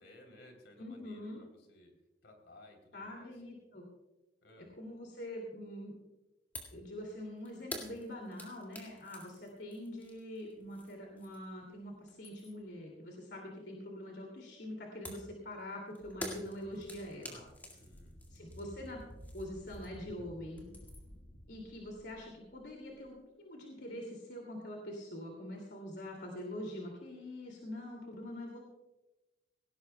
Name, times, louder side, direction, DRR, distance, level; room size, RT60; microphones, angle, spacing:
voice 1, 0.0-1.9 2.2-3.4 4.4-4.7 17.7-18.2, left 1 dB, 85° left, 3 dB, 3.4 m, -58 dB
voice 2, 0.8-1.4 2.9-3.9 4.8-6.0 6.7-17.4 18.3-20.6 21.5-28.6, left 1 dB, 70° left, 0 dB, 2.5 m, -44 dB
sound 1, 6.5-6.8 7.1-11.6 11.9-12.7 15.0-20.1 20.4-21.2, left 1 dB, 10° left, 2.1 m, -48 dB
sound 2, 16.0-23.1, equal, 55° left, 1.5 m, -54 dB
18.5 x 17.5 x 2.3 m, 1.1 s
head